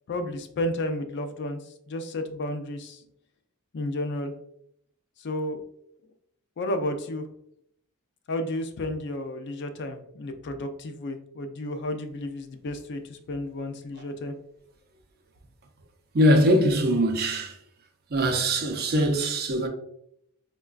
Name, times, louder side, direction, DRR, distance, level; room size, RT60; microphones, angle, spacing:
voice 1, 0.1-3.0 3.7-4.3 5.2-5.6 6.6-7.2 8.3-14.3, left 1 dB, 50° left, 0.4 m, -32 dB
voice 2, 16.1-17.6 18.1-19.7, equal, 45° right, 0.5 m, -22 dB
4.6 x 2.2 x 2.3 m
head